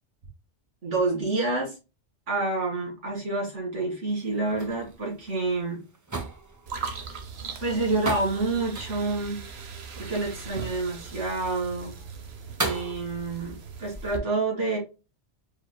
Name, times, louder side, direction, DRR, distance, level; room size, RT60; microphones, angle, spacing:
voice 1, 0.8-1.7 2.3-5.8 6.9-7.0 7.6-9.4 9.9-11.9 12.6-14.8, right 3 dB, 80° right, -3 dB, 2.6 m, -28 dB
sound 1, 4.2-12.9, right 3 dB, 25° right, 0.4 m, -38 dB
sound 2, 6.7-14.2, right 5 dB, 65° right, 1.1 m, -39 dB
4.7 x 4.5 x 2.2 m, 0.29 s
omnidirectional pair, 1.2 m